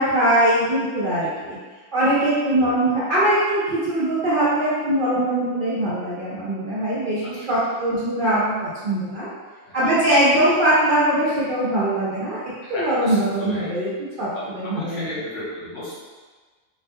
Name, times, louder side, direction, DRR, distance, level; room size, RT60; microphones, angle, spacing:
voice 1, 0.0-1.6 1.9-9.3 9.7-12.4 12.7-13.9 14.2-15.1, right 1 dB, 60° right, -10 dB, 0.6 m, -21 dB
voice 2, 7.2-7.5 9.6-9.9 12.6-13.7 14.3-15.9, left 1 dB, 70° left, -8 dB, 1.1 m, -35 dB
2.4 x 2.2 x 2.6 m, 1.4 s
omnidirectional pair, 1.4 m